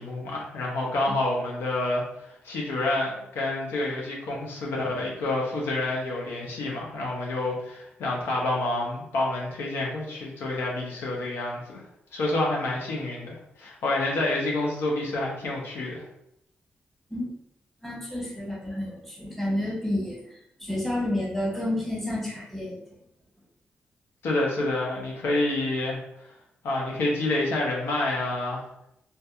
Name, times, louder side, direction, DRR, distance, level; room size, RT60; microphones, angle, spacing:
voice 1, 0.0-2.0 2.4-11.8 12.1-16.0 24.2-26.0 26.6-28.6, left 2 dB, 85° left, -2 dB, 0.6 m, -28 dB
voice 2, 17.8-20.3 20.6-22.8, left 1 dB, 5° left, -4 dB, 1.1 m, -30 dB
2.7 x 2.2 x 2.3 m, 0.79 s
supercardioid pair, 55°, 4 cm